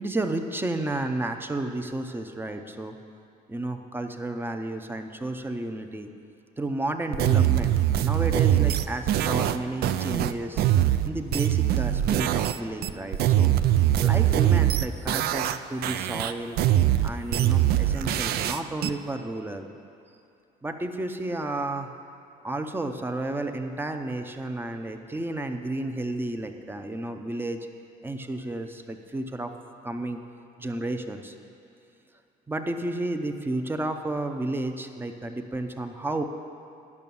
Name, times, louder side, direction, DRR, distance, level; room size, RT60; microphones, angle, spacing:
voice 1, 0.0-2.9 3.5-6.1 6.6-10.6 11.0-13.5 14.0-16.6 17.0-19.7 20.6-21.9 22.4-27.6 28.0-29.5 29.8-30.2 30.6-31.3 32.5-36.2, right 2 dB, 10° right, 6 dB, 0.6 m, -32 dB
sound 1, 7.1-12.6 12.8-15.6 15.8-18.9, right 12 dB, 65° right, 0.4 m, -22 dB
11.0 x 5.8 x 7.1 m, 2.5 s
cardioid pair, 110°, 17 cm